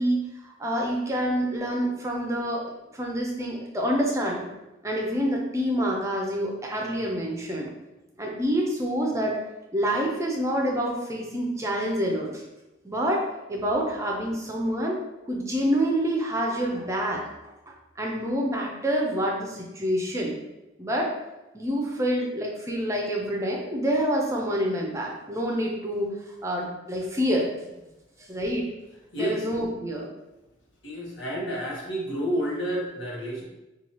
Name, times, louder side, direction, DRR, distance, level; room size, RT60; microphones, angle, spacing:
voice 1, 0.0-4.5 4.8-7.7 8.2-9.4 9.7-12.4 12.8-13.2 13.5-15.0 15.3-17.2 17.7-20.3 20.8-21.1 21.5-26.1 26.4-27.5 28.3-28.7 29.2-30.1, equal, 15° right, -1 dB, 0.5 m, -27 dB
voice 2, 29.1-29.5 30.8-33.4, equal, 70° left, -2 dB, 1.0 m, -30 dB
4.2 x 2.3 x 3.0 m, 0.98 s
head